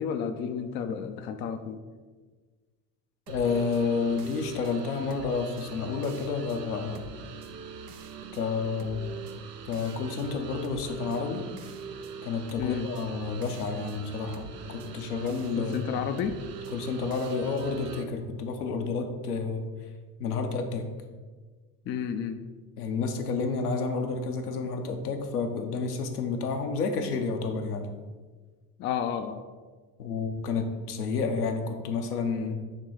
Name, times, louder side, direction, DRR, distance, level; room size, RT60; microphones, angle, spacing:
voice 1, 0.0-1.8 12.6-12.9 15.6-16.4 21.9-22.4 28.8-29.4, left 7 dB, 25° left, 8 dB, 0.4 m, -31 dB
voice 2, 3.3-7.1 8.3-9.0 9.7-11.4 12.2-15.9 16.7-19.6 20.2-20.9 22.8-27.9 30.0-32.5, left 4 dB, 75° left, 4 dB, 0.8 m, -30 dB
sound 1, 3.3-18.0, right 5 dB, 85° right, 0.6 m, -42 dB
6.6 x 3.0 x 4.8 m, 1.4 s
figure-of-eight pair, 60°, 46 cm